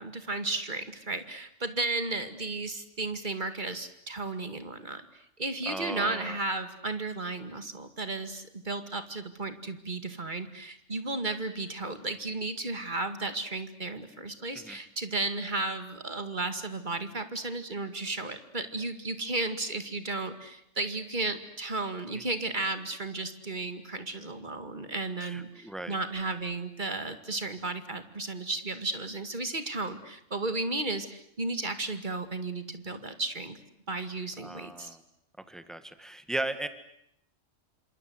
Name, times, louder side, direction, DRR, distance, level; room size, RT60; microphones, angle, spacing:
voice 1, 0.0-33.6 33.9-35.0, right 2 dB, 35° right, 9 dB, 2.3 m, -34 dB
voice 2, 5.7-6.4 14.5-14.8 22.1-22.2 25.2-26.0 34.4-35.0 35.5-36.7, right 1 dB, ahead, 10 dB, 1.9 m, -37 dB
28.5 x 26.5 x 8.0 m, 0.75 s
omnidirectional pair, 1.3 m